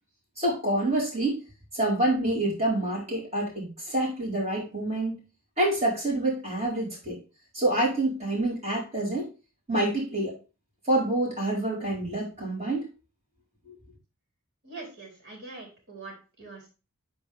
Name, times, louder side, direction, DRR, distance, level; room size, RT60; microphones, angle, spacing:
voice 1, 0.4-1.4 1.7-5.2 5.6-7.2 7.5-9.3 9.7-10.3 10.9-12.9 13.7-13.8, right 1 dB, 30° right, -6 dB, 4.9 m, -27 dB
voice 2, 14.6-16.7, right 3 dB, 50° right, -1 dB, 4.4 m, -43 dB
10.5 x 4.7 x 3.7 m, 0.32 s
head